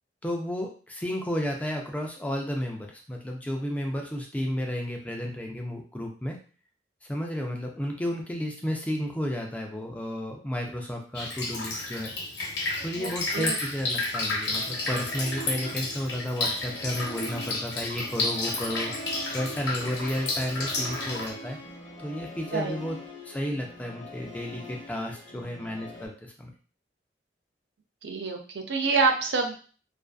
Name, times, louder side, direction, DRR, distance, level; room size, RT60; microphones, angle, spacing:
voice 1, 0.2-6.4 7.1-12.1 12.8-18.9 19.3-21.6 22.0-23.0 23.3-26.5, equal, 10° left, 1 dB, 0.3 m, -32 dB
Drip, 11.1-21.3, left 2 dB, 75° left, 0.8 m, -31 dB
voice 2, 12.8-13.5 22.5-22.8 28.0-29.5, right 4 dB, 70° right, 4 dB, 0.4 m, -27 dB
Musical instrument, 14.5-26.1, equal, 35° left, 0.7 m, -42 dB
2.5 x 2.4 x 2.3 m, 0.39 s
head